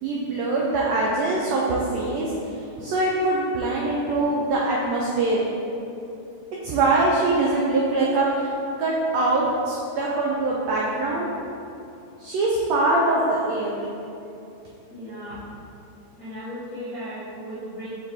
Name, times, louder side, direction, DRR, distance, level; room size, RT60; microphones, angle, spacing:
voice 1, 0.0-2.3 2.8-5.4 6.6-8.5 8.8-11.3 12.2-13.8, right 2 dB, 85° right, -4 dB, 1.5 m, -23 dB
voice 2, 14.9-15.5 16.2-17.9, equal, 50° left, -13 dB, 1.0 m, -36 dB
6.3 x 5.1 x 3.5 m, 2.8 s
omnidirectional pair, 3.7 m